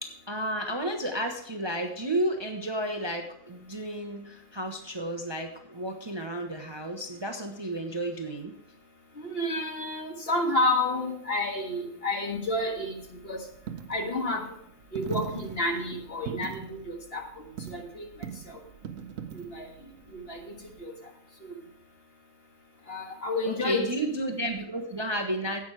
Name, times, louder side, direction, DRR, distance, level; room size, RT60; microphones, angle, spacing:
voice 1, 0.0-8.5 23.4-25.6, right 1 dB, 25° right, 3 dB, 0.9 m, -32 dB
voice 2, 9.2-13.0 13.2-13.4 13.9-14.5 14.9-18.1 19.3-19.7 20.1-20.9 22.9-23.9, left 2 dB, 45° left, 2 dB, 1.9 m, -30 dB
Coin (dropping), 12.3-20.9, right 8 dB, 75° right, 1.1 m, -41 dB
10.5 x 8.6 x 4.7 m, 0.67 s
omnidirectional pair, 1.4 m